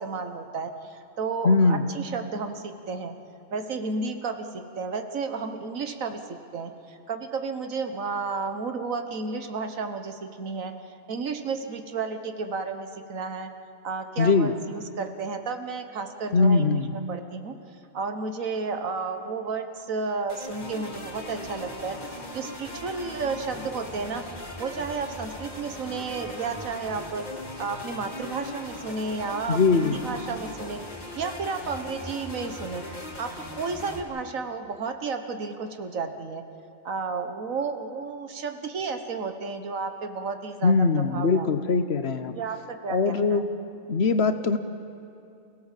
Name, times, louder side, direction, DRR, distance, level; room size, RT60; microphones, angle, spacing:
voice 1, 0.0-3.1 3.5-10.7 11.1-13.5 13.8-16.8 17.1-17.6 17.9-22.0 22.3-24.2 24.6-27.3 27.6-30.8 31.2-32.8 33.2-36.4 36.8-41.5 42.3-43.4, right 4 dB, 80° right, 7 dB, 1.7 m, -32 dB
voice 2, 1.4-1.8 14.2-14.5 16.3-16.9 29.5-30.0 40.6-42.3 42.9-43.5 43.9-44.6, left 4 dB, 55° left, 10 dB, 1.1 m, -21 dB
sound 1, 20.3-34.0, left 1 dB, 30° left, 2.8 m, -39 dB
29.0 x 17.0 x 7.5 m, 2.6 s
omnidirectional pair, 1.4 m